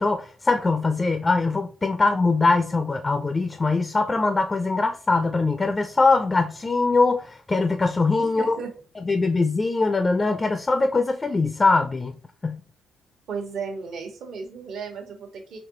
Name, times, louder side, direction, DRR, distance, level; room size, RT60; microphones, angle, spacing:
voice 1, 0.0-8.6 9.0-12.2 12.4-12.6, left 3 dB, 25° left, 0.4 m, -22 dB
voice 2, 8.2-8.7 13.3-15.6, right 5 dB, 70° right, 1.2 m, -34 dB
4.0 x 2.7 x 2.9 m
cardioid pair, 90°, 0 cm